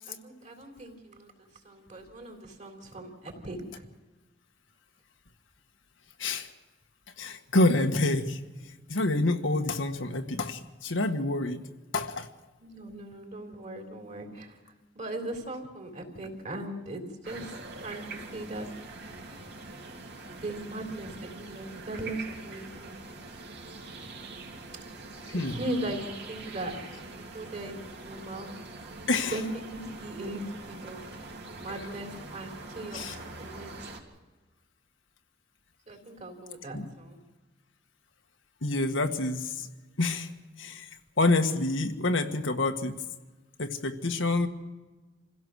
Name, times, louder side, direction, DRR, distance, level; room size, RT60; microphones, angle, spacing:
voice 1, 0.1-3.9 12.6-18.7 20.3-22.9 25.3-26.7 27.0-28.5 29.1-31.0 31.6-33.7 35.9-37.2, right 1 dB, 40° right, 3 dB, 3.6 m, -39 dB
voice 2, 7.2-8.4 8.9-11.7 11.9-12.3 25.3-25.6 29.1-29.3 32.9-33.2 36.7-36.9 38.6-39.7 40.0-40.3 40.6-40.9 41.2-43.0 43.6-44.5, left 2 dB, 90° left, 5 dB, 1.6 m, -27 dB
sound 1, 17.2-34.0, right 3 dB, 60° right, 2.9 m, -44 dB
27.0 x 16.5 x 6.4 m, 1.2 s
head